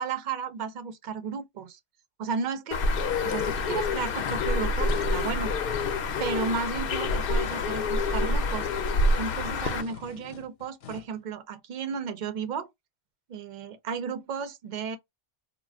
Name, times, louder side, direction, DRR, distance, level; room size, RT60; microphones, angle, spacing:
voice 1, 0.0-1.8 2.2-2.8 3.2-5.5 6.2-8.7 9.2-12.7 13.3-15.0, right 6 dB, 55° right, 0.5 m, -33 dB
Bird, 2.7-9.8, left 3 dB, 60° left, 0.7 m, -27 dB
sound 1, 3.1-11.2, left 8 dB, 85° left, 1.0 m, -43 dB
2.4 x 2.2 x 3.4 m
omnidirectional pair, 1.2 m